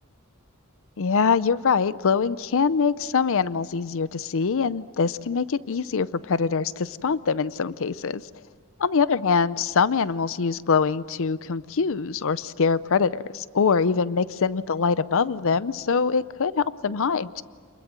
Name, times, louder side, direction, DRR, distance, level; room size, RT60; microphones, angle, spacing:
voice 1, 1.0-8.2 8.8-17.4, left 5 dB, 65° left, 17 dB, 0.6 m, -24 dB
27.5 x 21.5 x 7.6 m, 2.1 s
head